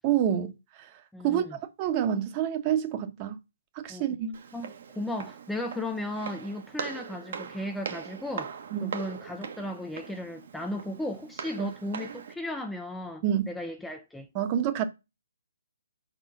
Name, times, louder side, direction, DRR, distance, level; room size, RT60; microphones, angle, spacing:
voice 1, 0.0-0.9 1.2-3.4 3.7-4.4 8.7-8.9 11.6-11.7 13.2-13.5 14.3-14.9, right 10 dB, 30° right, 1.1 m, -28 dB
voice 2, 1.1-1.6 3.9-4.1 4.5-8.5 8.8-14.3, left 1 dB, 5° left, 0.6 m, -35 dB
Walk footsteps, 4.3-12.3, right 7 dB, 55° right, 1.2 m, -41 dB
4.9 x 4.6 x 5.9 m
figure-of-eight pair, 140°, 0 cm